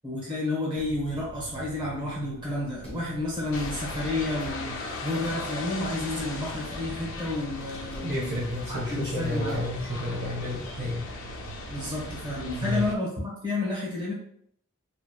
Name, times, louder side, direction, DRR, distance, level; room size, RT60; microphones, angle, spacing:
voice 1, 0.0-8.4 8.7-9.6 11.7-14.1, left 2 dB, 20° right, -6 dB, 1.0 m, -31 dB
sound 1, 0.7-13.0, right 5 dB, 90° right, 0.3 m, -45 dB
Stamp on Paper (dry), 2.8-3.0 4.4-4.6 6.1-6.4 7.9-8.1 9.5-9.7, equal, 5° left, 0.6 m, -44 dB
sound 2, 3.5-12.9, left 3 dB, 60° left, 0.4 m, -38 dB
voice 2, 8.0-11.1 12.6-12.8, left 1 dB, 50° right, -6 dB, 0.7 m, -30 dB
2.9 x 2.1 x 2.2 m, 0.67 s
head